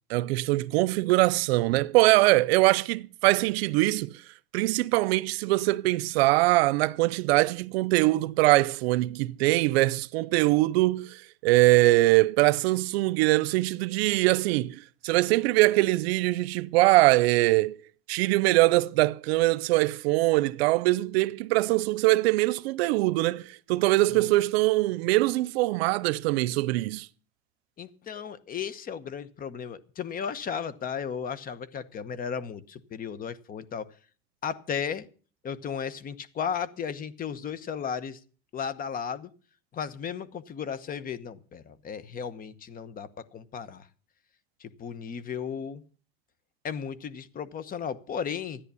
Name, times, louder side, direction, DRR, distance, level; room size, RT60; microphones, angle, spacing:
voice 1, 0.1-4.2 4.5-17.8 18.1-27.1, right 19 dB, 85° right, 0.6 m, -23 dB
voice 2, 27.8-33.9 34.4-35.0 35.4-38.2 38.5-39.3 39.7-43.9 44.6-45.8 46.6-48.6, left 7 dB, 30° left, 1.0 m, -35 dB
13.5 x 10.0 x 6.9 m
supercardioid pair, 135°, 30 cm